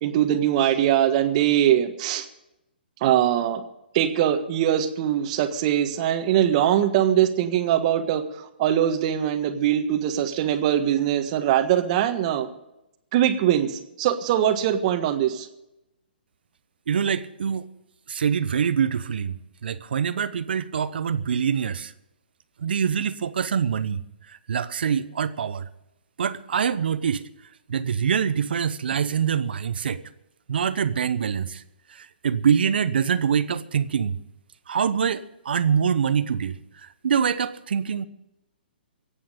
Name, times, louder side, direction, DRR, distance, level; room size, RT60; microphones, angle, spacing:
voice 1, 0.0-2.3 3.0-3.6 3.9-12.5 13.1-15.5, right 11 dB, 40° right, 8 dB, 1.5 m, -22 dB
voice 2, 16.9-17.7 18.1-19.4 19.6-21.9 22.6-24.0 24.5-25.6 26.2-27.2 27.7-30.0 30.5-31.6 32.2-34.2 34.7-36.6 37.0-38.0, right 7 dB, 65° right, 14 dB, 0.9 m, -24 dB
23.0 x 8.7 x 5.2 m, 0.88 s
hypercardioid pair, 130°, 6 cm